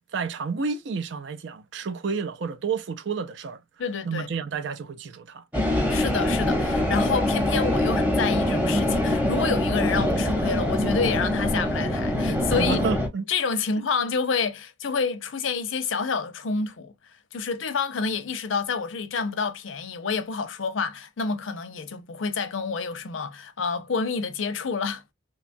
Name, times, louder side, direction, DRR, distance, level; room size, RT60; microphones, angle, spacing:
voice 1, 0.1-3.6 4.1-5.4 12.6-13.3, right 5 dB, 70° right, 0.4 m, -30 dB
voice 2, 3.8-4.3 5.9-12.8 13.3-16.9 17.3-25.0, left 5 dB, 85° left, 0.6 m, -28 dB
sound 1, 5.5-13.1, left 1 dB, 10° right, 0.8 m, -24 dB
2.9 x 2.3 x 2.5 m
head